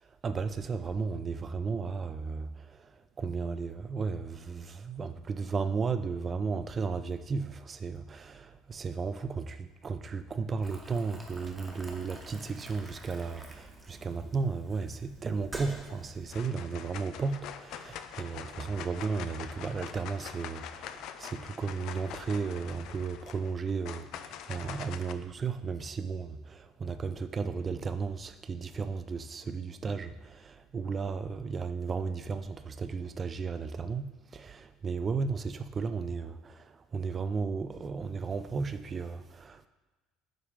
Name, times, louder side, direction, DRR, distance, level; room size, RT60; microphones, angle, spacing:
voice 1, 0.2-2.8 3.2-39.7, right 5 dB, 30° right, 0.4 m, -34 dB
Boiling, 10.6-16.4, right 2 dB, 15° right, 1.1 m, -48 dB
sound 1, 15.7-16.0 16.3-25.1, left 9 dB, 55° left, 0.3 m, -44 dB
8.7 x 3.4 x 3.6 m
figure-of-eight pair, 60°, 0 cm